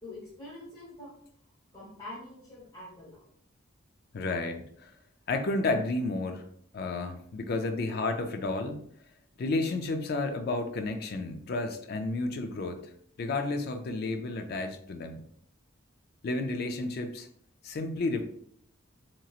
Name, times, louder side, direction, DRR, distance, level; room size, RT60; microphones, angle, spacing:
voice 1, 0.0-1.2 1.7-3.3, left 1 dB, 25° left, -9 dB, 1.0 m, -45 dB
voice 2, 4.1-4.9 5.3-6.4 6.7-8.9 9.4-12.8 13.2-15.2 16.2-17.3 17.6-18.2, left 2 dB, 50° left, 6 dB, 0.4 m, -31 dB
2.9 x 2.8 x 2.3 m, 0.66 s
head